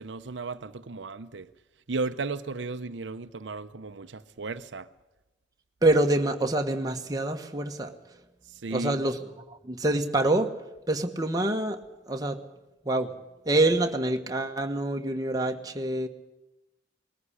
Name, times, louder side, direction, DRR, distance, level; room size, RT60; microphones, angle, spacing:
voice 1, 0.0-1.5 1.9-4.9 8.5-9.0, right 3 dB, 80° right, 0.7 m, -34 dB
voice 2, 5.8-7.9 8.7-9.2 9.5-10.5 10.9-11.8 12.1-12.4 12.8-13.1 13.5-16.1, right 2 dB, 20° right, 1.3 m, -26 dB
20.0 x 14.5 x 10.0 m
head